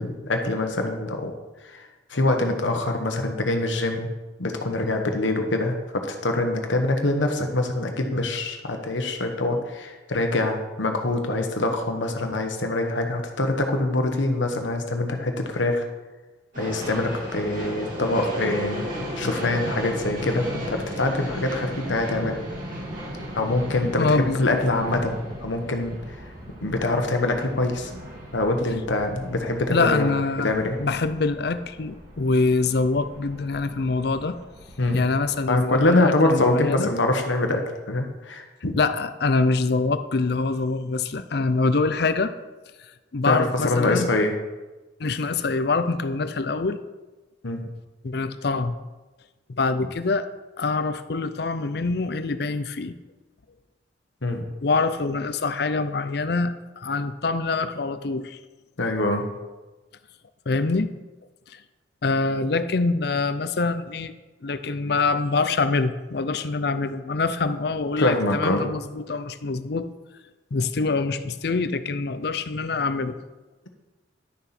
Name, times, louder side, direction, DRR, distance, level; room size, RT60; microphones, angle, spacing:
voice 1, 0.0-1.3 1.6-1.8 2.1-4.1 4.4-15.8 16.6-18.8 19.2-22.4 23.3-26.2 26.6-27.9 28.3-30.1 30.4-30.8 34.8-35.0 35.5-38.8 43.3-44.3 47.4-47.7 54.2-54.4 58.8-59.3 68.0-68.8, left 2 dB, 90° left, 5 dB, 1.2 m, -24 dB
sound 1, 16.5-35.9, equal, 45° right, 3.3 m, -36 dB
voice 2, 24.0-24.6 29.7-30.5 30.8-34.4 34.9-36.9 38.8-42.3 43.1-44.1 45.0-46.8 48.0-48.8 49.6-50.3 50.6-52.9 54.6-58.4 60.5-60.9 61.5-61.6 62.0-64.1 64.4-69.9 70.5-73.2, left 3 dB, 60° left, 12 dB, 0.6 m, -25 dB
11.5 x 6.9 x 4.3 m, 1.2 s
head